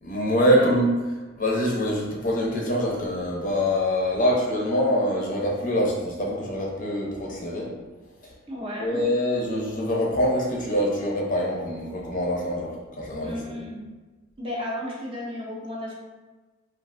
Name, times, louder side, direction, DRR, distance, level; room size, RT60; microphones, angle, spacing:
voice 1, 0.0-0.9 1.4-7.7 8.8-12.7 13.0-13.5, equal, 40° left, -3 dB, 0.5 m, -24 dB
voice 2, 8.5-9.0 13.2-13.9 14.4-15.9, left 1 dB, 25° right, -4 dB, 0.5 m, -34 dB
3.1 x 2.4 x 2.4 m, 1.2 s
head